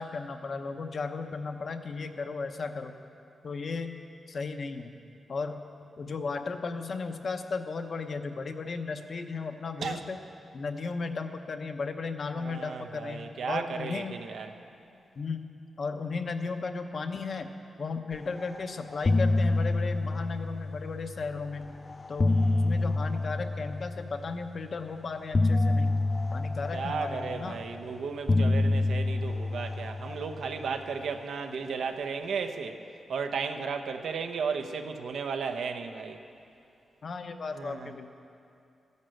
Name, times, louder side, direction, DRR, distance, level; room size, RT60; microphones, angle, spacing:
voice 1, 0.0-2.9 3.4-4.0 4.3-4.9 5.3-5.6 6.0-10.2 10.5-14.1 15.2-15.5 15.8-21.7 22.1-22.4 22.6-26.0 26.3-27.7 37.0-38.1, left 4 dB, 45° left, 7 dB, 0.8 m, -35 dB
voice 2, 12.4-14.5 22.3-22.8 26.7-32.8 33.1-36.2 37.5-37.9, right 5 dB, 80° right, 6 dB, 0.9 m, -34 dB
sound 1, 18.4-18.6 18.9-21.2 21.9-24.3 25.3-27.8 28.3-30.9, left 2 dB, 25° left, 0.3 m, -27 dB
14.0 x 11.0 x 7.8 m, 2.6 s
wide cardioid pair, 175°, 0 cm